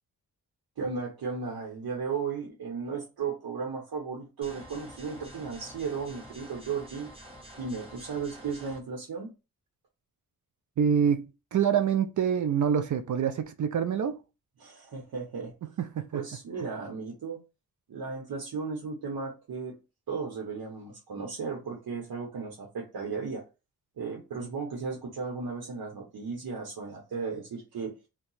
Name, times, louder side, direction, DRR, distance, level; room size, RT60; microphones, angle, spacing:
voice 1, 0.8-7.1 7.6-9.3 14.6-15.5 16.1-17.4 17.9-19.8 20.1-23.4 24.0-27.9, right 5 dB, 80° right, 0.9 m, -35 dB
sound 1, 4.4-8.8, equal, 15° right, 1.2 m, -48 dB
voice 2, 10.8-14.2 15.8-16.2, right 8 dB, 55° right, 0.5 m, -26 dB
2.7 x 2.2 x 4.0 m
cardioid pair, 55°, 36 cm